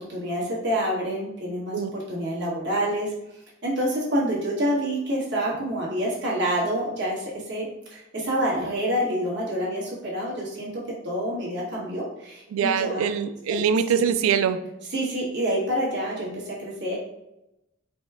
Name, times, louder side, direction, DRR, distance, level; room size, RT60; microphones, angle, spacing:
voice 1, 0.1-3.1 3.6-13.0 13.5-13.6 14.9-17.0, equal, 55° right, -5 dB, 1.4 m, -27 dB
voice 2, 12.5-14.6, right 7 dB, 85° right, 11 dB, 0.3 m, -23 dB
4.2 x 2.2 x 3.5 m, 0.88 s
head